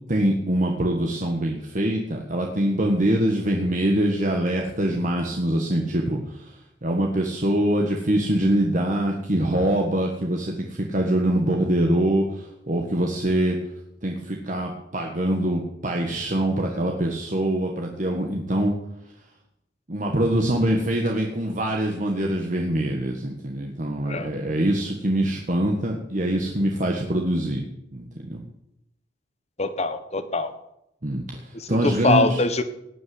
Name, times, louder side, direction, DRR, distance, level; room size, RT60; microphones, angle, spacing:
voice 1, 0.1-13.6 14.0-18.7 19.9-27.6 27.9-28.4 31.0-32.4, right 1 dB, 40° right, 1 dB, 1.6 m, -24 dB
voice 2, 29.6-30.5 31.5-32.6, left 2 dB, 35° left, 10 dB, 1.2 m, -23 dB
18.0 x 6.5 x 9.6 m, 0.85 s
head